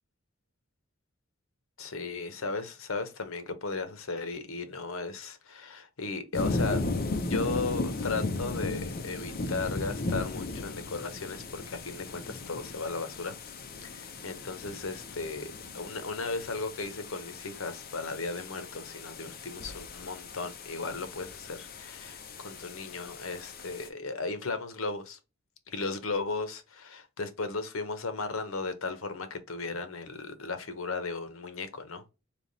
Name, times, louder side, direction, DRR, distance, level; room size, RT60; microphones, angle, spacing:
voice 1, 1.8-6.8 7.2-13.3 13.8-25.2 25.7-32.0, left 3 dB, 85° left, 0.9 m, -36 dB
sound 1, 6.3-23.9, left 3 dB, 45° left, 0.7 m, -36 dB
3.5 x 2.9 x 4.0 m
head